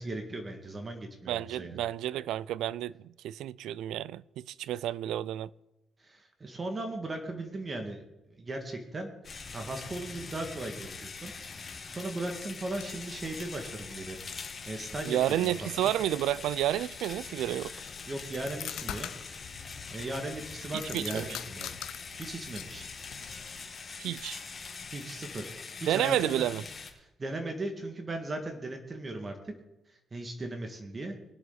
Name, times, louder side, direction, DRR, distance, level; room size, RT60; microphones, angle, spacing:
voice 1, 0.0-1.8 6.0-8.0 8.3-9.1 9.5-11.3 11.6-14.2 14.7-15.5 15.8-15.9 18.1-19.1 19.6-21.7 22.2-22.9 24.9-25.5 25.8-26.5 27.0-29.5 30.1-31.2, right 2 dB, 30° right, 1.9 m, -37 dB
voice 2, 1.3-2.9 3.2-5.5 15.0-17.7 20.9-21.3 24.0-24.4 25.9-26.6, right 12 dB, 80° right, 0.3 m, -30 dB
sound 1, 9.2-26.9, left 4 dB, 40° left, 2.3 m, -43 dB
sound 2, 12.7-23.7, left 11 dB, 75° left, 0.5 m, -46 dB
22.0 x 7.5 x 4.0 m
cardioid pair, 80°, 0 cm